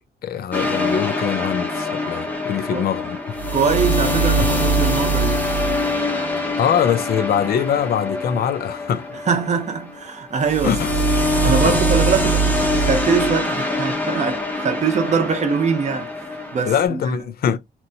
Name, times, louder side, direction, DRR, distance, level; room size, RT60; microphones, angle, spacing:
voice 1, 0.2-3.4 4.4-4.5 6.6-9.1 10.6-11.0 11.5-11.8 16.7-17.6, left 8 dB, 60° left, 0.4 m, -23 dB
sound 1, 0.5-10.0 10.4-16.8, equal, 10° left, 0.5 m, -23 dB
voice 2, 3.5-5.4 9.3-10.8 11.4-17.2, right 5 dB, 40° right, 0.6 m, -23 dB
2.9 x 2.1 x 2.6 m
wide cardioid pair, 170°, 18 cm